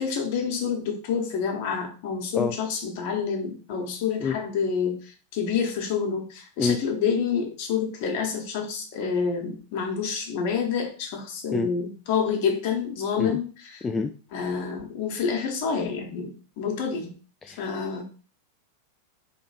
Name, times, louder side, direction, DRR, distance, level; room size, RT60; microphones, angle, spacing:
voice 1, 0.0-13.9 14.3-17.1 17.5-18.0, left 6 dB, 50° left, 3 dB, 1.2 m, -28 dB
voice 2, 2.3-2.6 4.2-4.4 6.6-6.8 11.5-11.7 13.2-13.4 13.8-14.1 17.4-17.6, left 4 dB, 15° left, 5 dB, 0.3 m, -26 dB
3.8 x 3.1 x 4.1 m, 0.37 s
figure-of-eight pair, 90°, 0 cm